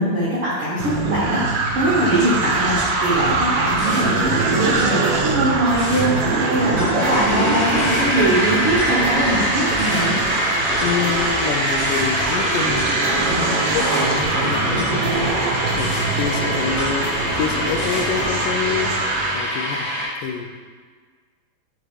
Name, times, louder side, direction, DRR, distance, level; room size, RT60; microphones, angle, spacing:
voice 1, 0.0-10.1, right 1 dB, 65° right, -8 dB, 1.4 m, -22 dB
sound 1, 0.8-19.4, right 4 dB, 80° right, 2.2 m, -23 dB
sound 2, 2.3-18.3, left 2 dB, 55° left, 2.1 m, -33 dB
sound 3, 6.2-20.0, equal, 35° right, 0.8 m, -24 dB
voice 2, 10.8-20.5, left 7 dB, 80° left, 3 dB, 2.1 m, -27 dB
9.3 x 3.7 x 3.2 m, 1.6 s
omnidirectional pair, 3.9 m